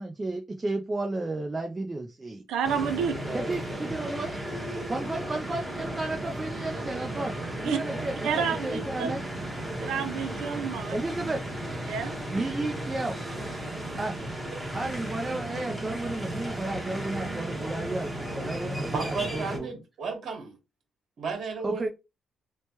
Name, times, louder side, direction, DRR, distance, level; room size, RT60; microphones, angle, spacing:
voice 1, 0.0-2.4 3.3-4.3 4.9-7.4 7.6-9.2 10.9-11.4 12.3-13.2 14.0-14.2 14.7-19.7 21.6-21.9, right 2 dB, 20° right, 0.4 m, -33 dB
voice 2, 2.5-3.2 7.6-7.8 8.2-9.1 9.8-11.0 11.9-12.2, right 6 dB, 90° right, 0.5 m, -29 dB
sound 1, 2.6-19.6, right 1 dB, 5° right, 1.0 m, -34 dB
voice 3, 18.9-20.6 21.2-21.9, right 5 dB, 55° right, 1.3 m, -33 dB
3.1 x 2.1 x 2.9 m
cardioid pair, 110°, 0 cm